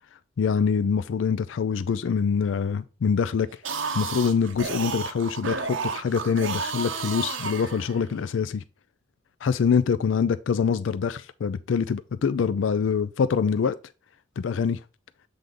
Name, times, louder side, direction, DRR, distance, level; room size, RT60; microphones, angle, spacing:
voice 1, 0.4-3.5 3.9-8.6 9.4-13.7 14.4-14.8, left 6 dB, 75° left, 0.4 m, -25 dB
sound 1, 3.5-8.3, right 5 dB, 80° right, 0.8 m, -32 dB
7.7 x 3.4 x 3.7 m
head